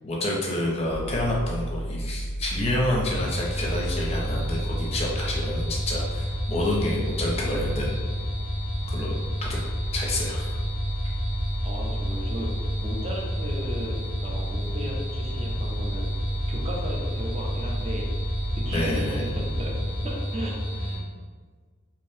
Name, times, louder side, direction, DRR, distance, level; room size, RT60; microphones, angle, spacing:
voice 1, 0.0-8.0 8.9-9.1 9.4-9.6 9.9-10.5 18.7-19.3, left 1 dB, 30° left, -3 dB, 0.5 m, -28 dB
sound 1, 0.9-20.1, equal, 85° left, 0.4 m, -33 dB
sound 2, 3.1-21.0, equal, 70° right, 0.7 m, -31 dB
voice 2, 11.6-16.1 16.5-18.1 18.5-21.1, equal, 30° right, -3 dB, 0.5 m, -36 dB
2.6 x 2.1 x 3.1 m, 1.5 s
head